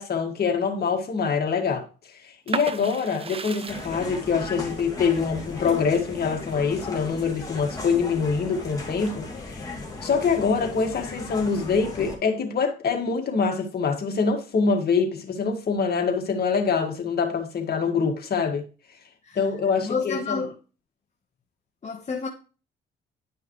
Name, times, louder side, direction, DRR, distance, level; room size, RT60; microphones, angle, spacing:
voice 1, 0.0-1.9 2.2-9.7 10.0-18.6 19.4-20.4, left 5 dB, 50° left, 1.9 m, -25 dB
sound 1, 2.5-8.1 8.5-9.4, right 5 dB, 30° right, 0.7 m, -37 dB
sound 2, 3.7-12.2, left 3 dB, 20° left, 2.4 m, -36 dB
voice 2, 19.8-20.5 21.8-22.3, left 5 dB, 35° left, 1.2 m, -29 dB
10.5 x 5.6 x 3.2 m
cardioid pair, 90°, 20 cm